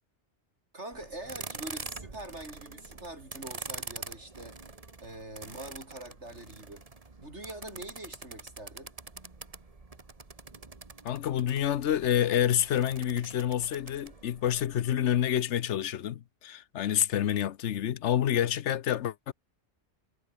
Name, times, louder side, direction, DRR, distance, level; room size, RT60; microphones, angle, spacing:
voice 1, 0.7-4.6 5.0-6.9 7.2-8.9, right 2 dB, 80° right, 6.4 m, -44 dB
sound 1, 0.9-15.4, right 3 dB, 30° right, 1.6 m, -45 dB
voice 2, 11.0-19.3, left 10 dB, 85° left, 1.1 m, -28 dB
omnidirectional pair, 1.2 m